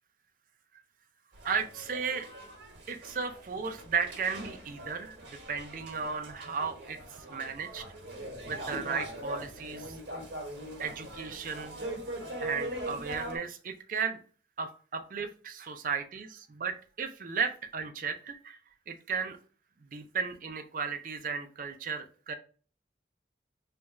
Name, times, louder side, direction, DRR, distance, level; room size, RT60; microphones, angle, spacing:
sound 1, 1.3-13.4, right 1 dB, 85° right, 1.1 m, -41 dB
voice 1, 1.4-2.3 2.9-7.8 8.4-10.0 10.8-11.8 12.4-14.2 14.6-18.6 18.9-19.4 19.9-22.4, right 5 dB, 50° right, 7 dB, 0.4 m, -35 dB
3.3 x 2.3 x 4.0 m, 0.39 s
head